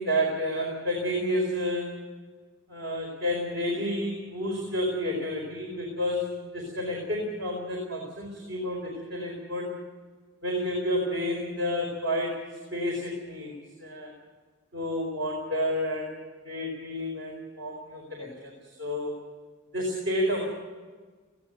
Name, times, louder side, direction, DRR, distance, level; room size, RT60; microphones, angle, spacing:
voice 1, 0.0-2.0 2.7-9.8 10.4-13.5 13.8-14.1 14.7-16.2 16.4-19.1 19.7-20.4, equal, 60° right, 0 dB, 4.6 m, -30 dB
19.0 x 17.0 x 9.4 m, 1.4 s
head